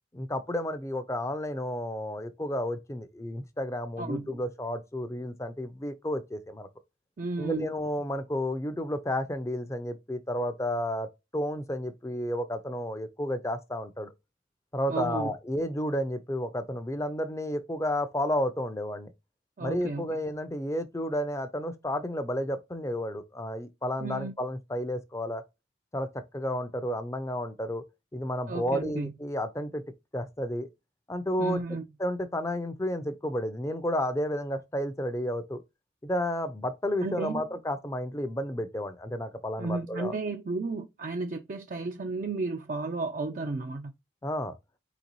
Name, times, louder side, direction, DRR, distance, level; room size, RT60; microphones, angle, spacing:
voice 1, 0.1-6.7 7.4-11.1 11.3-14.1 14.7-19.1 19.6-25.4 25.9-27.8 28.1-29.8 30.1-30.7 31.1-31.6 32.0-35.6 36.0-40.1 44.2-44.5, left 1 dB, 15° left, 0.5 m, -31 dB
voice 2, 4.0-4.4 7.2-7.8 14.9-15.3 19.6-20.2 24.0-24.4 28.5-29.1 31.4-31.8 37.0-37.4 39.6-43.9, right 3 dB, 40° right, 0.4 m, -33 dB
4.5 x 3.9 x 3.0 m
head